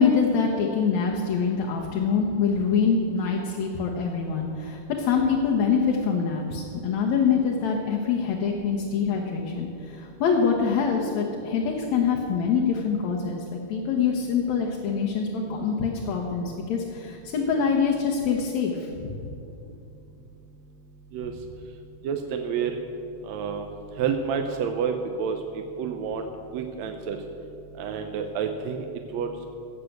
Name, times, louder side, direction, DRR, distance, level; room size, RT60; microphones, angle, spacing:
voice 1, 0.0-19.2, left 6 dB, 65° left, -1 dB, 2.2 m, -25 dB
voice 2, 22.0-22.8 23.2-23.7 24.0-26.3 26.5-27.2 27.8-28.8 29.1-29.5, right 6 dB, 75° right, 5 dB, 1.7 m, -29 dB
17.0 x 6.7 x 7.9 m, 2.7 s
omnidirectional pair, 3.8 m